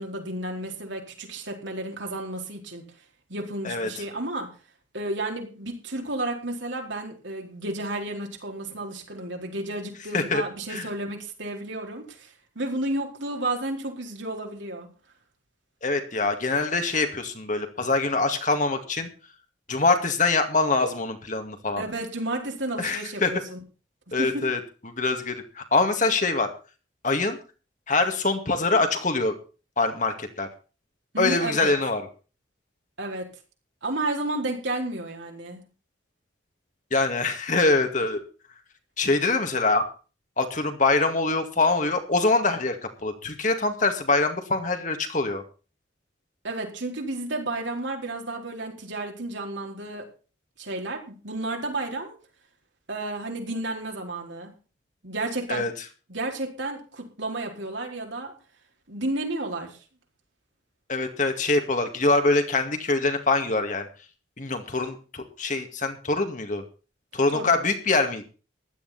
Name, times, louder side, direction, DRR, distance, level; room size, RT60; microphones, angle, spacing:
voice 1, 0.0-2.8 3.3-4.5 4.9-14.9 21.8-23.6 24.2-24.4 31.1-31.7 33.0-33.3 33.8-35.6 46.4-50.1 50.6-52.1 52.9-54.5 55.0-55.7 56.1-58.3 58.9-59.8 67.3-67.6, right 2 dB, 70° right, 2 dB, 4.4 m, -32 dB
voice 2, 15.8-19.1 19.7-21.8 22.8-23.3 24.1-26.5 27.0-27.4 27.9-29.3 29.8-30.5 31.2-32.0 36.9-38.2 39.0-39.8 40.4-45.4 55.5-55.7 60.9-63.9 64.4-66.6 67.1-68.2, left 3 dB, 40° left, 6 dB, 2.2 m, -24 dB
15.5 x 12.0 x 4.3 m, 0.35 s
head